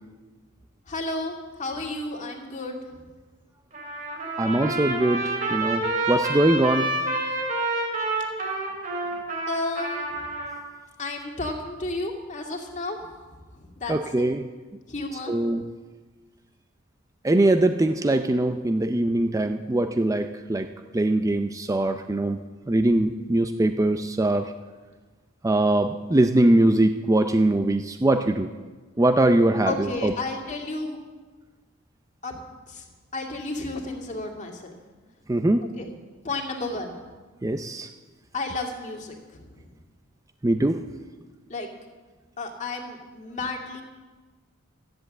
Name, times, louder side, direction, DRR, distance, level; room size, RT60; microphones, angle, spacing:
voice 1, 0.9-2.8 9.5-10.2 11.0-13.0 13.5-14.3 14.9-15.4 29.6-31.0 32.2-32.4 32.7-32.9 33.1-34.7 35.8-35.9 36.2-37.0 38.3-39.7 41.5-41.7 42.4-43.8, left 2 dB, 35° left, 1 dB, 2.2 m, -32 dB
Trumpet, 3.7-10.6, right 2 dB, 45° right, 3.9 m, -28 dB
voice 2, 4.4-6.9 13.9-14.5 15.3-15.6 17.2-20.7 20.9-24.5 25.4-28.5 29.0-30.1 35.3-35.6 37.4-37.9 40.4-40.8, right 1 dB, 15° right, 8 dB, 0.5 m, -22 dB
13.5 x 10.5 x 7.7 m, 1.3 s
head